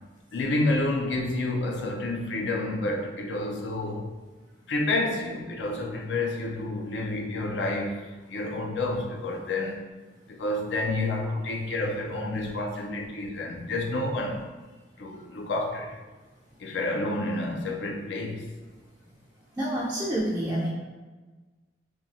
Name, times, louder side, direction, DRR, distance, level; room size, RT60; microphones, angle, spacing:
voice 1, 0.3-4.1 4.7-9.8 10.3-14.5 15.0-16.0 16.6-18.5, left 2 dB, 70° left, 2 dB, 0.4 m, -29 dB
voice 2, 19.6-20.7, right 1 dB, 15° right, -8 dB, 0.3 m, -28 dB
3.0 x 2.3 x 2.6 m, 1.3 s
head